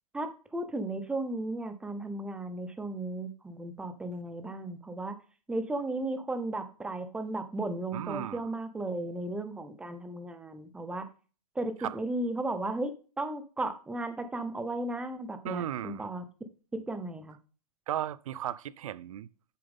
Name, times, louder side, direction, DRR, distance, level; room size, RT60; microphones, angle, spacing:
voice 1, 0.1-5.2 5.5-11.1 11.5-12.9 13.2-16.2 16.7-17.4, right 2 dB, 5° right, 0.8 m, -35 dB
voice 2, 7.9-8.5 11.8-12.0 15.4-16.1 17.9-19.3, right 11 dB, 55° right, 0.5 m, -35 dB
7.7 x 6.9 x 3.5 m
hypercardioid pair, 140°, 20 cm